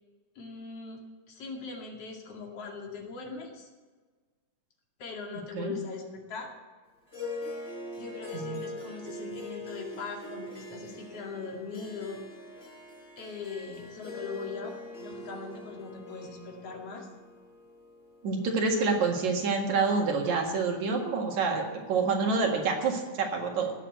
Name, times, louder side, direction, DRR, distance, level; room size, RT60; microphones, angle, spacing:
voice 1, 0.4-1.0 1.3-3.7 5.0-6.5 8.0-12.2 13.2-17.1, left 4 dB, 50° left, 1 dB, 3.0 m, -40 dB
Harp, 7.1-19.6, left 1 dB, 20° left, 4.3 m, -43 dB
voice 2, 8.3-8.7 18.2-23.7, right 4 dB, 60° right, 2 dB, 3.0 m, -27 dB
18.0 x 7.5 x 8.0 m, 1.4 s
omnidirectional pair, 3.9 m